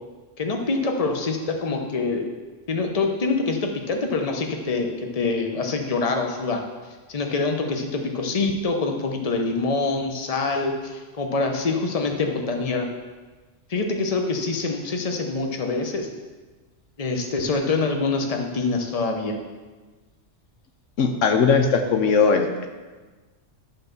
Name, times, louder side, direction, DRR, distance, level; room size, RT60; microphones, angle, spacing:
voice 1, 0.4-2.2 2.7-6.6 7.1-12.9 13.7-16.1 17.0-19.4, left 3 dB, 35° left, 3 dB, 0.9 m, -25 dB
voice 2, 21.0-22.7, left 5 dB, 80° left, 5 dB, 1.1 m, -19 dB
11.0 x 4.0 x 6.7 m, 1.3 s
omnidirectional pair, 1.3 m